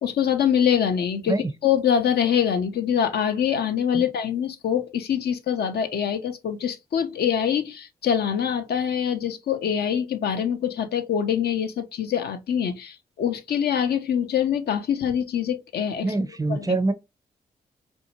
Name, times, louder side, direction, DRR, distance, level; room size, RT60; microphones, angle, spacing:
voice 1, 0.0-16.1 16.5-16.8, left 8 dB, 65° left, 0.5 m, -24 dB
voice 2, 16.0-16.9, right 2 dB, 20° right, 0.4 m, -24 dB
2.6 x 2.1 x 2.9 m
supercardioid pair, 40°, 18 cm